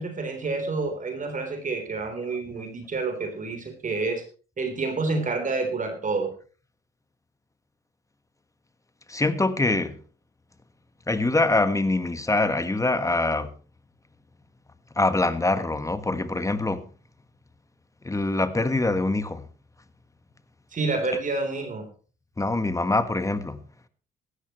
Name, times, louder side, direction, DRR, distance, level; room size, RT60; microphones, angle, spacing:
voice 1, 0.0-4.2 4.6-6.3 20.7-21.9, right 3 dB, 40° right, 3.8 m, -28 dB
voice 2, 9.1-9.9 11.1-13.5 14.9-16.8 18.0-19.5 22.4-23.6, left 2 dB, 15° left, 1.5 m, -24 dB
16.5 x 13.0 x 3.1 m
cardioid pair, 90°, 20 cm